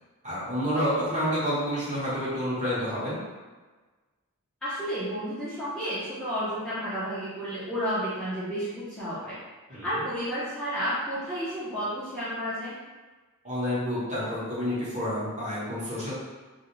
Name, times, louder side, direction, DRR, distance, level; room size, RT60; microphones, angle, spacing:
voice 1, 0.2-3.2 9.7-10.0 13.4-16.1, equal, 30° right, -9 dB, 1.0 m, -29 dB
voice 2, 4.6-9.4 9.7-12.7, equal, 5° left, -13 dB, 0.6 m, -31 dB
2.4 x 2.1 x 2.9 m, 1.3 s
head